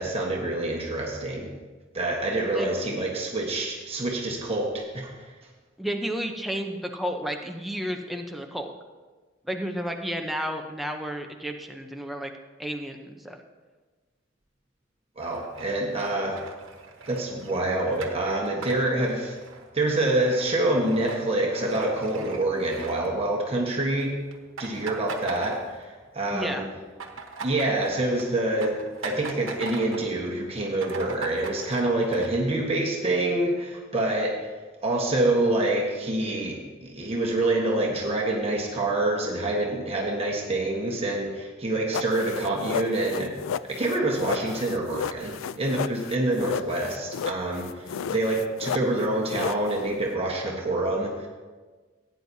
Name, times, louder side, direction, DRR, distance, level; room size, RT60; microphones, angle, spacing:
voice 1, 0.0-1.5 1.9-5.1 15.2-16.4 17.1-19.3 19.7-24.1 24.6-26.6 27.4-34.4 34.8-43.3 43.7-51.3, right 2 dB, 30° right, -1 dB, 1.3 m, -26 dB
voice 2, 5.8-8.7 9.5-12.3 12.6-13.4 26.3-26.6, equal, ahead, 3 dB, 0.7 m, -32 dB
sound 1, 15.2-23.6 23.9-24.1 24.3-26.1 26.4-30.2 30.5-30.6 30.8-32.3, right 4 dB, 85° right, 1.2 m, -41 dB
sound 2, 41.9-50.1, left 7 dB, 80° left, 0.3 m, -33 dB
16.5 x 9.4 x 2.8 m, 1.4 s
head